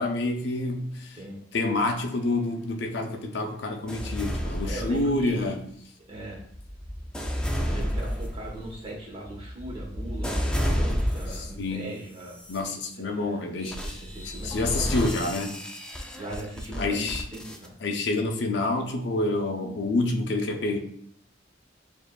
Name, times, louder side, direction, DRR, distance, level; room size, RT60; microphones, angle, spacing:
voice 1, 0.0-1.2 1.5-5.6 11.6-12.0 12.5-13.8 14.4-15.5 16.8-17.2 17.8-20.8, left 2 dB, 65° left, 0.6 m, -27 dB
sound 1, 3.9-5.5 6.1-11.6 12.2-12.6 13.6-17.7, equal, 5° left, 0.3 m, -31 dB
voice 2, 4.6-5.6 6.1-6.4 7.6-12.4 12.9-13.5 13.8-15.2 16.1-17.7, right 1 dB, 30° right, 1.1 m, -39 dB
6.9 x 2.6 x 2.2 m
head